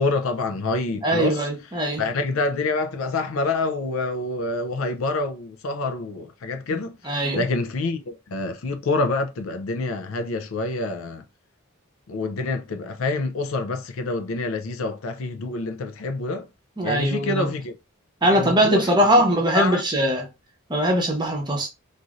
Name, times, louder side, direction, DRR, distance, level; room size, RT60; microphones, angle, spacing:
voice 1, 0.0-1.5 2.0-7.0 7.3-11.2 12.1-16.5 16.8-17.7 18.3-18.9 19.5-19.8, left 3 dB, 70° left, 0.5 m, -27 dB
voice 2, 1.0-2.0 6.7-6.8 7.0-7.4 16.8-17.5 18.2-20.3 20.7-21.7, right 1 dB, 20° right, 0.8 m, -21 dB
3.0 x 2.7 x 2.4 m
head